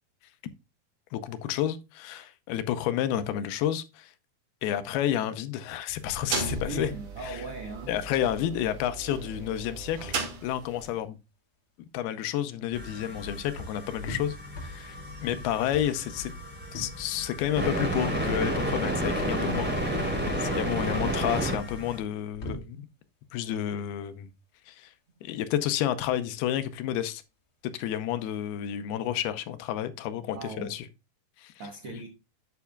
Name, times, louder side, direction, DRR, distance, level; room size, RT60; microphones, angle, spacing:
voice 1, 1.1-4.1 4.6-6.9 7.2-7.4 7.9-10.2 10.4-11.2 11.9-15.0 15.2-16.3 16.7-19.7 20.4-22.9 23.3-24.3 24.7-24.9 25.2-27.2 27.6-30.9 31.4-31.5 31.9-32.0, left 11 dB, 80° left, 2.7 m, -30 dB
sound 1, 5.9-11.0, right 3 dB, 55° right, 3.8 m, -36 dB
voice 2, 6.3-7.9 30.3-30.7 31.6-32.1, right 3 dB, 75° right, 1.3 m, -38 dB
sound 2, 11.1-28.9, left 1 dB, 40° left, 2.2 m, -47 dB
sound 3, 12.7-22.0, right 1 dB, 5° right, 3.1 m, -31 dB
11.5 x 8.3 x 2.3 m
omnidirectional pair, 4.5 m